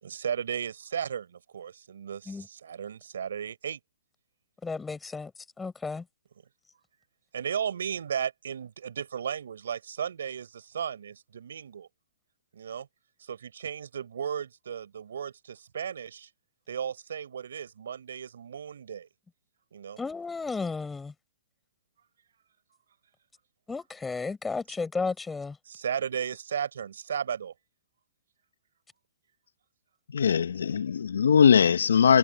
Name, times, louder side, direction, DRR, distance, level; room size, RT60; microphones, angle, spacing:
voice 1, 0.0-3.8 7.3-11.9 12.5-12.9 13.3-16.3 16.7-19.1 19.7-20.0 25.7-27.5, right 8 dB, 75° right, 4.1 m, -35 dB
voice 2, 4.6-5.3 5.6-6.0 20.0-21.1 23.7-25.5, left 4 dB, 10° left, 5.0 m, -33 dB
voice 3, 30.1-32.2, left 7 dB, 80° left, 1.1 m, -20 dB
hypercardioid pair, 135°, 0 cm